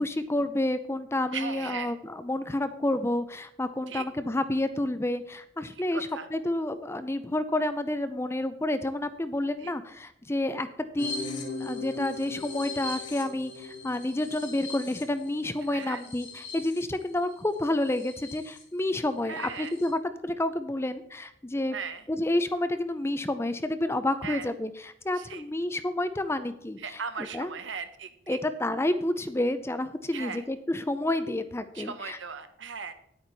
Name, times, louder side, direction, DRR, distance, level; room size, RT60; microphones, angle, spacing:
voice 1, 0.0-21.8 22.1-27.5 28.3-32.2, left 1 dB, 15° left, 11 dB, 0.5 m, -29 dB
voice 2, 1.3-1.9 3.9-4.0 5.9-6.3 9.6-9.7 15.7-16.0 19.3-19.7 21.7-22.0 24.2-24.5 25.2-25.4 26.8-28.4 30.1-30.4 31.7-32.9, right 6 dB, 70° right, 9 dB, 1.0 m, -37 dB
sound 1, 11.0-18.6 19.1-19.2 19.4-19.9, left 3 dB, 75° left, 2.5 m, -39 dB
10.0 x 8.8 x 4.1 m, 0.71 s
head